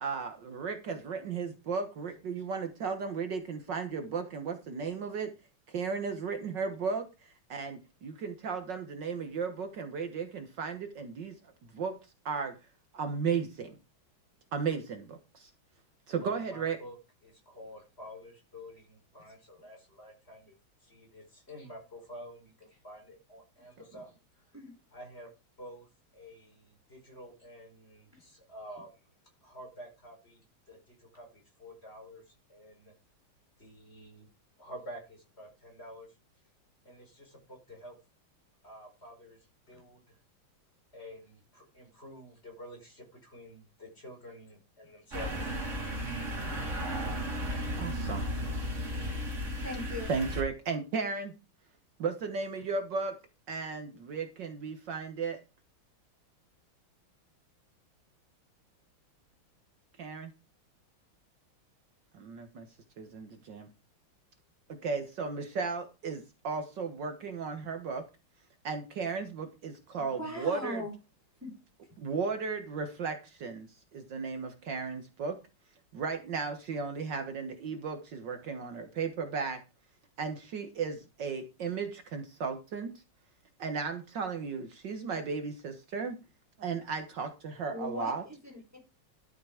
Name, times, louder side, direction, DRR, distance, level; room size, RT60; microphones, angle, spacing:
voice 1, 0.0-5.3 5.7-7.1 7.5-11.3 11.7-11.9 12.3-12.5 12.9-13.8 14.5-15.5 16.1-16.8 47.8-48.3 50.1-51.3 52.0-53.2 53.5-55.4 60.0-60.3 62.1-62.7 63.0-63.7 64.8-68.0 68.6-70.8 72.0-75.4 75.9-79.6 80.2-82.9 83.6-86.2 86.6-88.2, right 5 dB, 60° right, 6 dB, 1.8 m, -35 dB
voice 2, 16.1-17.0 17.2-20.5 20.8-24.4 24.9-25.3 25.6-25.9 26.1-28.9 29.4-32.2 32.5-32.9 33.6-34.3 34.6-36.1 36.9-38.0 38.6-39.4 39.7-40.2 40.9-45.5 47.0-47.3, equal, 30° left, 1 dB, 5.3 m, -49 dB
sound 1, 45.1-50.4, equal, 35° right, 3.0 m, -34 dB
voice 3, 49.6-50.1 70.0-70.9 71.4-71.5 87.7-88.8, left 1 dB, 5° right, 3 dB, 3.7 m, -39 dB
12.5 x 6.8 x 5.0 m, 0.28 s
omnidirectional pair, 2.3 m